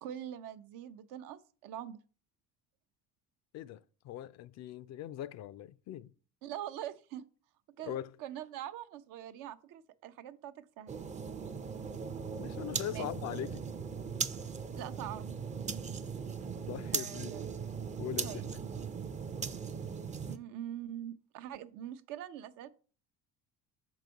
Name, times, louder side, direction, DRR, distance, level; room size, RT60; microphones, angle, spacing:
voice 1, 0.0-2.0 6.4-7.2 7.8-7.9 8.2-11.0 12.9-13.1 14.8-15.4 16.9-17.4 18.2-18.4 20.3-22.7, right 11 dB, 70° right, 0.6 m, -43 dB
voice 2, 3.5-6.1 7.8-8.1 12.3-13.6 16.7-17.3 18.0-18.6, left 11 dB, 50° left, 0.4 m, -41 dB
sound 1, 10.9-20.4, right 6 dB, 20° right, 0.5 m, -39 dB
6.1 x 4.1 x 4.6 m
supercardioid pair, 90°, 34 cm